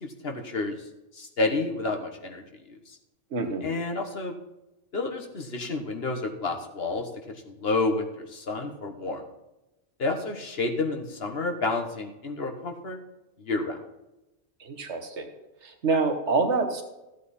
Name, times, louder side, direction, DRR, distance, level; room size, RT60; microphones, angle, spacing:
voice 1, 0.0-0.8 1.1-3.0 3.6-4.3 4.9-7.1 7.4-9.2 10.0-13.0 13.4-13.8, left 3 dB, 55° left, 4 dB, 1.4 m, -30 dB
voice 2, 3.3-3.7 14.6-15.3 15.6-16.8, right 4 dB, 70° right, 5 dB, 1.6 m, -26 dB
14.5 x 8.3 x 4.2 m, 0.97 s
omnidirectional pair, 1.3 m